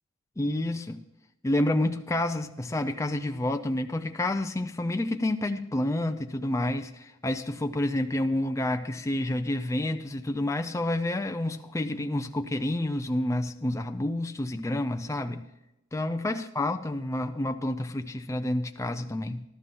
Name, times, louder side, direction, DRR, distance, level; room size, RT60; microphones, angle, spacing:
voice 1, 0.4-1.0 1.4-15.4 15.9-19.4, left 1 dB, 15° left, 6 dB, 0.4 m, -29 dB
13.5 x 12.5 x 3.8 m, 0.91 s
head